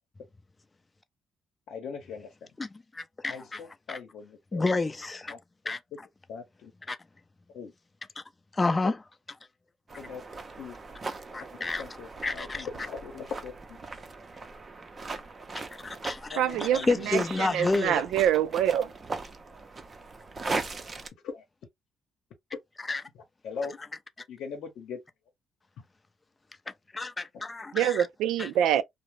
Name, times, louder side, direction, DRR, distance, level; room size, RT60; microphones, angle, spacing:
voice 1, 1.7-2.3 3.3-4.6 5.3-5.4 6.3-6.7 7.5-7.7 8.8-9.0 10.0-10.2 10.6-10.8 11.8-13.8 16.3-17.1 21.2-21.4 23.4-23.8 24.3-25.0, left 5 dB, 80° left, 0.8 m, -40 dB
voice 2, 2.9-3.6 3.9-4.0 4.5-5.3 5.7-5.8 6.9-7.0 8.2-8.3 8.5-9.0 11.3-11.8 12.2-12.7 15.8-18.1 22.9-23.0 26.9-28.1 28.4-28.5, left 3 dB, 25° left, 0.4 m, -29 dB
sound 1, 9.9-21.1, right 3 dB, 35° right, 0.5 m, -39 dB
voice 3, 16.4-16.8 17.1-18.9 27.7-28.8, right 10 dB, 85° right, 0.3 m, -25 dB
2.4 x 2.0 x 3.0 m
cardioid pair, 90°, 0 cm